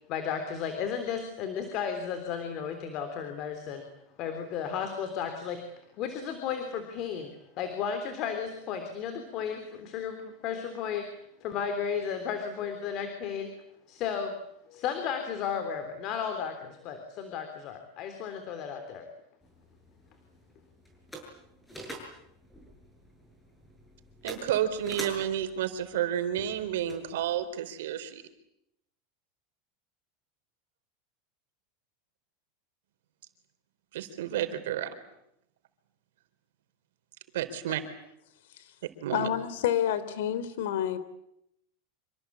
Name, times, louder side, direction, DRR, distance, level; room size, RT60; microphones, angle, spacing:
voice 1, 0.1-3.8 4.2-11.1 11.4-13.5 13.9-14.4 14.7-19.1, left 7 dB, 40° left, 7 dB, 3.4 m, -34 dB
sound 1, 19.4-27.4, right 1 dB, 5° left, 7.9 m, -47 dB
voice 2, 24.2-28.2 33.9-34.9 37.3-37.8 39.0-39.3, right 10 dB, 85° right, 9 dB, 4.2 m, -31 dB
voice 3, 39.1-41.0, left 10 dB, 75° left, 15 dB, 3.2 m, -29 dB
27.0 x 25.5 x 8.6 m, 0.79 s
supercardioid pair, 150°, 0 cm